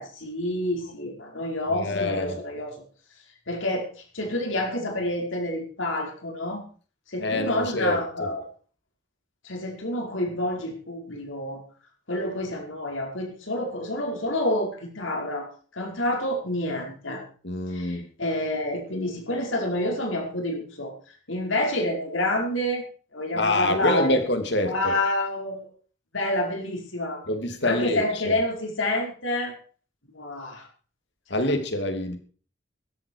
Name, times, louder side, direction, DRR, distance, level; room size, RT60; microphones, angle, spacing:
voice 1, 0.0-2.8 3.5-6.6 7.1-8.4 9.4-11.6 12.1-15.5 15.7-17.2 17.7-20.9 21.3-22.8 23.1-24.2 24.6-25.7 26.1-27.3 27.6-29.6 30.1-30.7 31.3-31.4, left 1 dB, 85° left, 5.1 m, -28 dB
voice 2, 1.7-2.4 7.2-8.3 17.4-18.1 23.3-24.9 27.3-28.4 31.3-32.2, left 1 dB, 60° left, 2.8 m, -26 dB
15.5 x 13.5 x 4.8 m
head